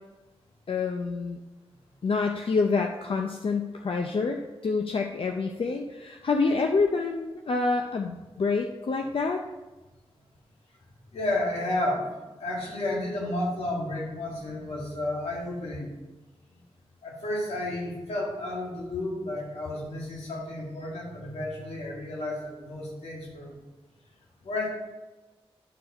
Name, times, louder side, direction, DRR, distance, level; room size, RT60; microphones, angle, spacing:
voice 1, 0.7-1.4 2.0-9.4, left 4 dB, 60° left, 3 dB, 0.6 m, -27 dB
voice 2, 11.1-15.9 16.5-16.6 17.0-23.6 24.4-24.7, left 1 dB, 90° left, -3 dB, 2.2 m, -32 dB
11.0 x 4.6 x 4.3 m, 1.1 s
cardioid pair, 65°, 11 cm